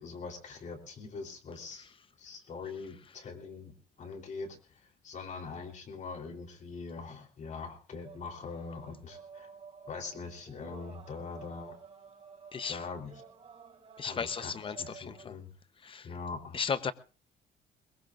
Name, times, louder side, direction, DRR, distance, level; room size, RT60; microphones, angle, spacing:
voice 1, 0.0-1.9 2.2-9.5 9.9-11.8 12.7-13.1 14.0-14.5 14.8-15.5 16.0-16.6, left 4 dB, 45° left, 3.8 m, -42 dB
sound 1, 8.0-15.2, right 5 dB, 35° right, 3.9 m, -52 dB
voice 2, 14.0-15.4 15.8-16.1 16.5-16.9, left 6 dB, 30° left, 0.9 m, -35 dB
22.0 x 21.0 x 2.6 m
cardioid pair, 110°, 17 cm